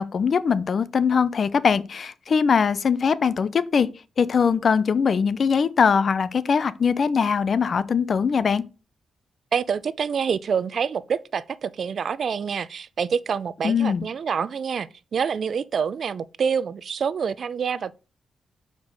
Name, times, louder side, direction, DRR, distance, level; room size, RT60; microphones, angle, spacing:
voice 1, 0.0-3.9 4.2-8.6 13.6-14.0, left 6 dB, 50° left, 0.6 m, -21 dB
voice 2, 9.5-17.9, right 6 dB, 60° right, 0.5 m, -27 dB
6.4 x 5.1 x 5.2 m
cardioid pair, 95°, 0 cm